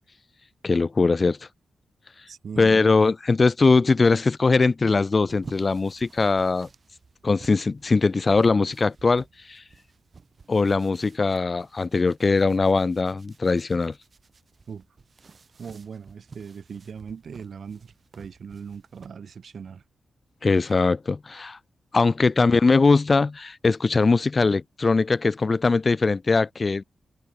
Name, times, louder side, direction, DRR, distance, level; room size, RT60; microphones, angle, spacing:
voice 1, 0.6-1.4 2.6-6.7 7.2-9.6 10.5-13.9 20.4-21.6 21.9-26.8, left 3 dB, 40° left, 0.3 m, -21 dB
voice 2, 2.3-2.9 14.7-14.8 15.6-19.8, right 6 dB, 65° right, 2.8 m, -39 dB
sound 1, 5.0-19.1, right 4 dB, 50° right, 4.1 m, -51 dB
cardioid pair, 70°, 0 cm